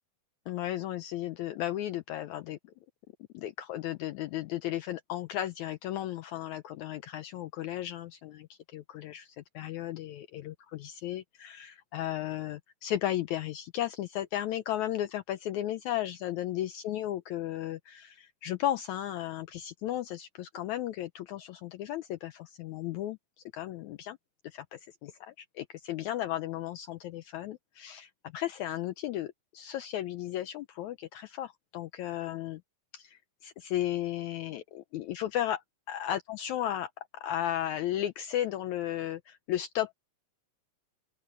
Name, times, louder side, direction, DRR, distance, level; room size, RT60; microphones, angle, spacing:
voice 1, 0.5-2.6 3.3-23.2 23.5-24.2 24.4-32.6 32.9-39.9, left 12 dB, 80° left, 1.7 m, -35 dB
open air
omnidirectional pair, 4.0 m